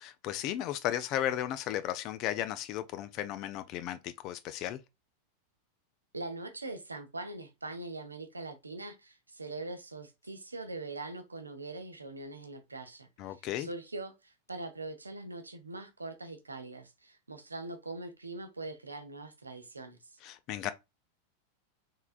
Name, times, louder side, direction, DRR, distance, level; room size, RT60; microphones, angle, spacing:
voice 1, 0.0-4.8 13.2-13.7 20.2-20.7, left 12 dB, 40° left, 0.3 m, -35 dB
voice 2, 6.1-20.2, right 2 dB, 80° right, 0.6 m, -42 dB
3.7 x 3.3 x 2.4 m
figure-of-eight pair, 90°, 0 cm